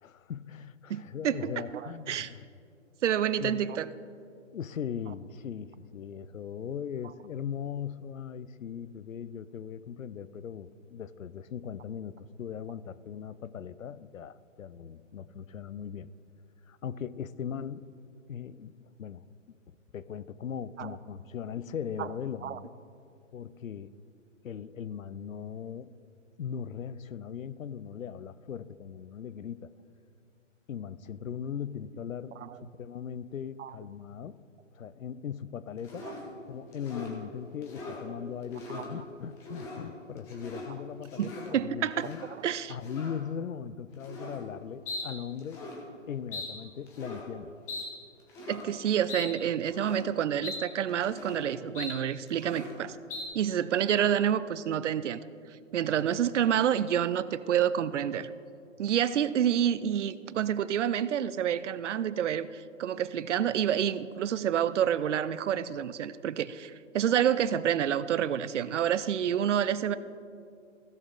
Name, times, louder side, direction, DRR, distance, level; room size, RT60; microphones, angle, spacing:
voice 1, 0.0-2.4 3.4-3.7 4.5-16.1 16.7-17.9 18.3-19.3 19.7-22.7 23.3-23.9 24.4-25.9 26.4-29.7 30.7-34.4 34.7-36.1 36.5-42.3 42.7-45.6 46.1-47.6, left 8 dB, 85° left, 16 dB, 0.6 m, -39 dB
voice 2, 0.9-1.5 2.1-2.3 3.0-3.9 20.8-20.9 22.0-22.1 22.4-22.6 32.4-32.5 33.6-33.7 41.2-42.7 48.5-53.0 53.3-55.2 55.7-58.3 58.8-70.0, right 9 dB, 65° right, 16 dB, 0.6 m, -28 dB
sound 1, 35.8-36.3 36.7-37.1 37.6-38.0 38.4-38.9 39.4-39.8 40.2-40.7 41.0-41.5 42.0-42.3 42.8-43.2 44.0-44.4 44.9-45.1 45.4-45.8 46.3-46.5 46.9-47.3 47.7-47.9 48.3-48.6 49.1-49.3 49.6-50.1 50.4-50.6 50.9-51.4 51.7-52.0 52.3-52.8 53.1-53.2, left 2 dB, 5° left, 0.5 m, -40 dB
16.0 x 6.4 x 3.8 m, 2.4 s
hypercardioid pair, 140°, 39 cm